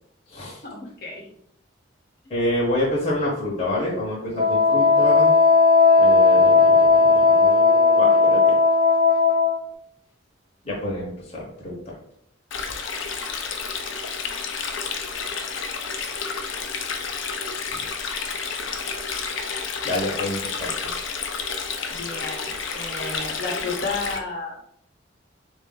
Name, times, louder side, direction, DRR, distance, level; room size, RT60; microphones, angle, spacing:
voice 1, 0.6-1.3 17.7-17.9 21.9-24.6, left 3 dB, 55° left, -1 dB, 1.1 m, -32 dB
voice 2, 2.3-5.3 6.0-8.6 10.6-11.9 15.2-15.3 19.8-20.7, left 1 dB, 30° left, -4 dB, 0.9 m, -28 dB
Wind instrument woodwind instrument, 4.4-9.6, left 4 dB, 30° right, 0.7 m, -16 dB
Stream, 12.5-24.2, left 5 dB, 75° left, 0.5 m, -30 dB
3.8 x 2.6 x 3.7 m, 0.68 s
head